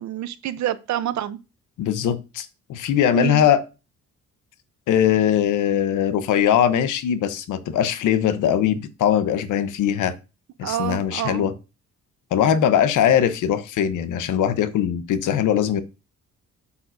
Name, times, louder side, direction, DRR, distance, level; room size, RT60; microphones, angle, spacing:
voice 1, 0.0-1.4 3.1-3.4 10.6-11.5, right 12 dB, 70° right, 0.8 m, -27 dB
voice 2, 1.8-3.6 4.9-10.2 10.6-11.5 12.3-15.8, left 9 dB, 80° left, 1.0 m, -21 dB
8.4 x 7.0 x 2.7 m
cardioid pair, 90°, 30 cm